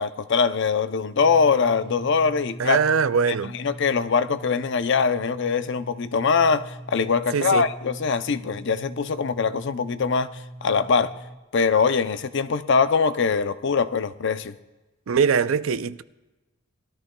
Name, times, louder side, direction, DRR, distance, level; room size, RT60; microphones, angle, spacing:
voice 1, 0.0-2.8 3.5-10.3 10.6-11.1 11.5-14.6, left 5 dB, 60° left, 0.6 m, -22 dB
sound 1, 1.1-11.4, right 1 dB, 20° right, 1.5 m, -41 dB
voice 2, 2.6-3.6 7.3-7.7 15.1-16.0, right 6 dB, 85° right, 0.5 m, -22 dB
20.5 x 13.5 x 2.3 m
head